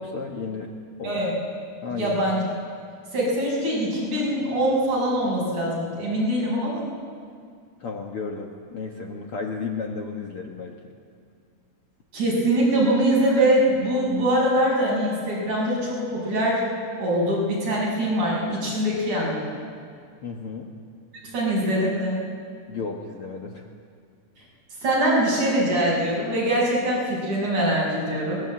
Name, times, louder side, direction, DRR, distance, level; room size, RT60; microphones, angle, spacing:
voice 1, 0.1-0.7 1.0-1.2 1.8-2.2 7.8-10.8 20.2-20.7 22.7-23.6, left 4 dB, 50° left, 1 dB, 1.9 m, -33 dB
voice 2, 2.0-2.4 3.1-6.9 12.1-16.7 17.0-19.5 21.2-22.2 24.8-28.4, right 1 dB, 60° right, -4 dB, 7.7 m, -23 dB
22.0 x 20.0 x 8.8 m, 2.2 s
omnidirectional pair, 3.8 m